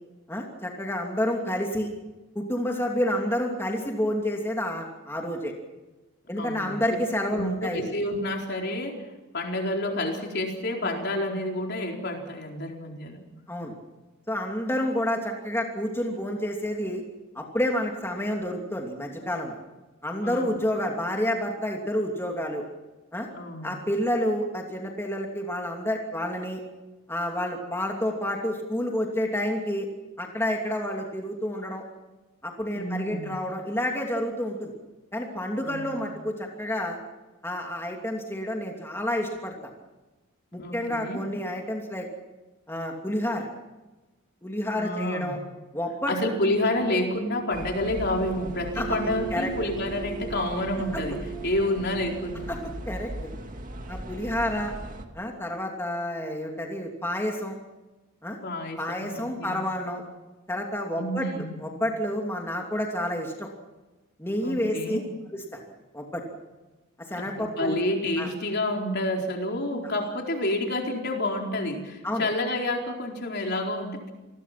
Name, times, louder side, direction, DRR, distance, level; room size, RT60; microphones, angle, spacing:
voice 1, 0.3-1.9 2.3-5.5 6.3-7.9 13.5-13.7 14.3-17.0 17.3-19.6 20.0-22.6 23.1-23.3 23.6-26.6 27.1-29.9 30.2-31.8 32.4-34.7 35.1-37.0 37.4-39.5 40.5-42.1 42.7-43.5 44.4-45.4 45.7-46.1 48.8-48.9 49.3-49.5 50.9-51.0 52.5-52.6 52.9-53.3 53.9-54.7 55.1-57.5 58.2-58.4 58.8-60.0 60.5-63.5 64.2-65.0 65.3-65.6 65.9-66.2 67.1-67.8 68.2-68.3 72.0-72.3, left 1 dB, 10° left, 1 dB, 2.8 m, -29 dB
voice 2, 6.3-6.8 7.3-9.0 9.3-13.2 20.2-20.6 23.3-23.7 32.7-33.3 35.6-36.0 40.5-41.2 44.7-45.4 46.1-52.5 58.4-59.7 60.9-61.6 64.4-65.0 67.1-74.1, left 1 dB, 50° left, 2 dB, 4.3 m, -29 dB
sound 1, 46.3-52.7, right 7 dB, 15° right, 5.1 m, -39 dB
sound 2, 47.5-55.0, right 1 dB, 40° right, 2.4 m, -39 dB
28.5 x 20.5 x 6.0 m, 1.1 s
head